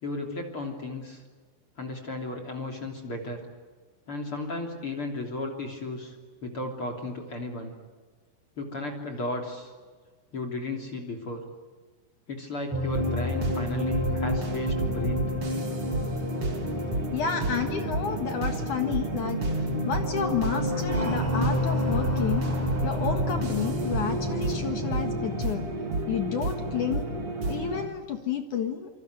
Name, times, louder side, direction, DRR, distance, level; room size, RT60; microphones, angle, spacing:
voice 1, 0.0-1.2 1.8-3.4 4.1-6.2 6.4-7.7 8.6-9.7 10.3-11.4 12.3-15.3, left 2 dB, 30° left, 4 dB, 3.3 m, -34 dB
sound 1, 12.7-25.4, left 1 dB, 5° right, 3.4 m, -31 dB
sound 2, 12.9-27.9, right 2 dB, 35° right, 3.1 m, -31 dB
voice 2, 17.1-19.4 19.9-22.5 22.8-25.7 26.1-27.1 27.5-28.9, left 7 dB, 60° left, 6 dB, 2.2 m, -30 dB
sound 3, 18.5-26.3, equal, 20° right, 6.0 m, -38 dB
27.5 x 26.5 x 8.1 m, 1.5 s
omnidirectional pair, 5.6 m